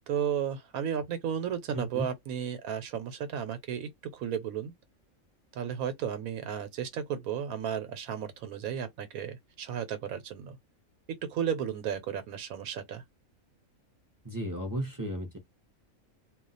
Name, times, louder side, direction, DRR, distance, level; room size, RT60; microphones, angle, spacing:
voice 1, 0.1-4.7 5.5-10.6 11.1-13.0, right 8 dB, 85° right, 1.2 m, -34 dB
voice 2, 1.7-2.1 14.2-15.4, right 1 dB, 20° right, 0.6 m, -34 dB
2.4 x 2.3 x 3.9 m
omnidirectional pair, 1.5 m